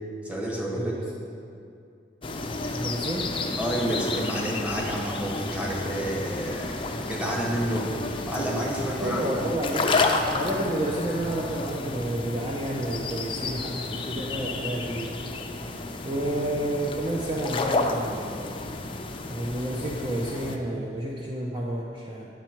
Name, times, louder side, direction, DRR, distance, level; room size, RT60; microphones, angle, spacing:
voice 1, 0.2-0.9 3.6-7.9 8.2-9.3, right 1 dB, 10° right, -3 dB, 1.3 m, -29 dB
sound 1, 2.2-20.6, left 3 dB, 30° left, 0.5 m, -31 dB
voice 2, 2.7-3.3 8.9-10.0 10.3-15.2 16.0-18.6 19.3-22.3, right 1 dB, 30° right, -3 dB, 0.7 m, -30 dB
9.1 x 7.2 x 4.5 m, 2.5 s
head